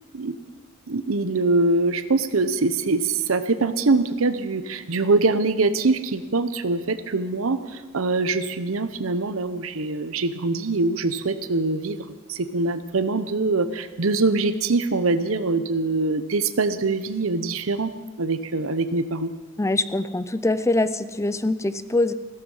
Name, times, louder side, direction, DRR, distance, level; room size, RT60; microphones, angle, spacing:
voice 1, 0.9-17.9 18.2-19.3, right 3 dB, 85° right, 12 dB, 0.9 m, -23 dB
voice 2, 19.6-22.1, left 2 dB, 15° left, 13 dB, 0.5 m, -23 dB
15.5 x 14.0 x 5.5 m, 1.3 s
head